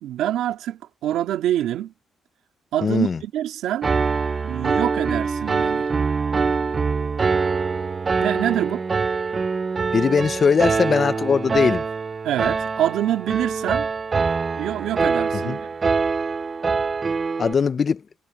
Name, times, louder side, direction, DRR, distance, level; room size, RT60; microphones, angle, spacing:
voice 1, 0.0-1.9 2.7-3.9 4.4-5.9 8.2-8.8 12.2-13.9 14.6-15.7, right 12 dB, 85° right, 2.3 m, -25 dB
voice 2, 2.8-3.2 9.9-11.8 15.3-15.6 17.4-18.0, left 6 dB, 45° left, 0.7 m, -20 dB
Piano, 3.8-17.5, right 4 dB, 35° right, 0.5 m, -24 dB
cardioid pair, 90°, 0 cm